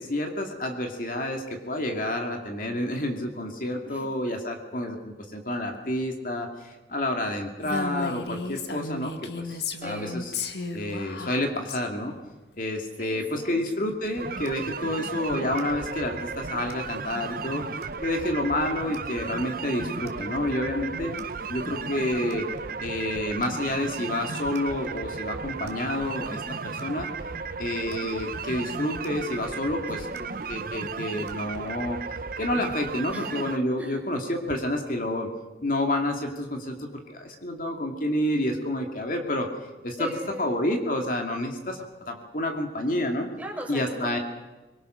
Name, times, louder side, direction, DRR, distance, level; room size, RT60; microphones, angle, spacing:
voice 1, 0.0-10.3 10.7-12.1 12.6-17.6 18.0-21.1 21.5-22.5 22.8-27.1 27.6-30.1 30.5-32.0 32.4-35.3 35.6-39.5 39.8-40.1 40.4-43.3 43.7-44.2, left 1 dB, 50° left, 3 dB, 2.4 m, -29 dB
Female speech woman speaking, 7.6-11.8, left 3 dB, 70° left, 2.0 m, -34 dB
voice 2, 9.8-10.2 13.0-13.6 29.9-30.5 33.1-33.4 33.8-34.0 40.0-40.5 43.4-44.2, equal, 10° right, 0 dB, 4.4 m, -39 dB
sound 1, 13.9-31.8, right 1 dB, 70° right, 4.0 m, -45 dB
sound 2, 14.2-33.6, right 5 dB, 50° right, 0.8 m, -35 dB
25.0 x 22.0 x 6.5 m, 1.2 s
head